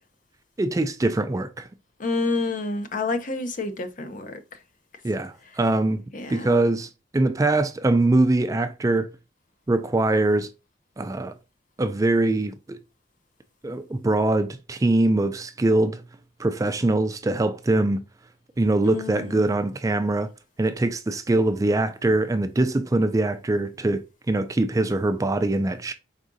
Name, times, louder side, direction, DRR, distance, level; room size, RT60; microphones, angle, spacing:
voice 1, 0.6-1.7 5.0-6.0 6.3-9.1 9.7-10.5 11.0-11.3 11.8-12.8 13.6-16.0 16.4-18.0 18.6-20.3 20.6-25.9, right 2 dB, 20° right, 0.3 m, -23 dB
voice 2, 2.0-4.4 6.1-6.6 18.8-19.5, left 3 dB, 45° left, 0.6 m, -29 dB
5.0 x 3.6 x 2.6 m
head